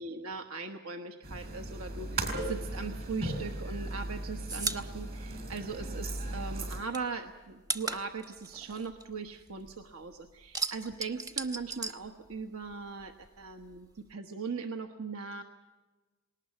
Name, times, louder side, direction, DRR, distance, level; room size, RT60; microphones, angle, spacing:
voice 1, 0.0-15.4, right 4 dB, 75° right, 6 dB, 1.2 m, -39 dB
sound 1, 1.2-6.8, right 2 dB, 45° right, 4.5 m, -37 dB
sound 2, 3.8-6.2 6.5-9.8 10.1-12.7 13.0-14.1, right 3 dB, 15° right, 0.8 m, -38 dB
20.5 x 19.0 x 8.3 m, 1.3 s
head